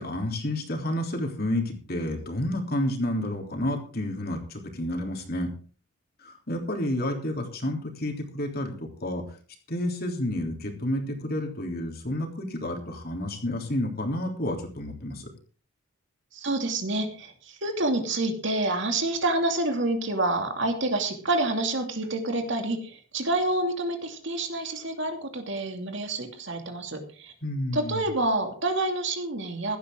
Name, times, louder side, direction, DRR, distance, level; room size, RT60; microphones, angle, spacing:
voice 1, 0.0-5.5 6.2-9.2 9.7-15.3 27.4-28.1, left 1 dB, 45° left, 2 dB, 3.4 m, -30 dB
voice 2, 16.3-27.3 27.7-29.8, right 2 dB, 55° right, 4 dB, 2.7 m, -28 dB
16.0 x 12.5 x 3.8 m, 0.40 s
head